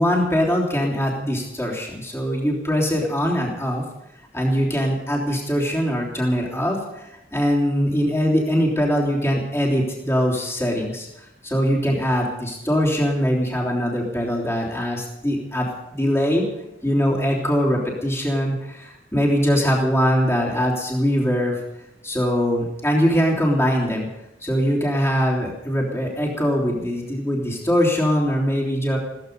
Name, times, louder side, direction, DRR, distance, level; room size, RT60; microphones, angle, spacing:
voice 1, 0.0-3.8 4.3-16.4 16.8-21.6 22.0-24.1 24.4-29.0, equal, 15° left, -3 dB, 3.3 m, -22 dB
17.0 x 14.5 x 5.4 m, 0.91 s
head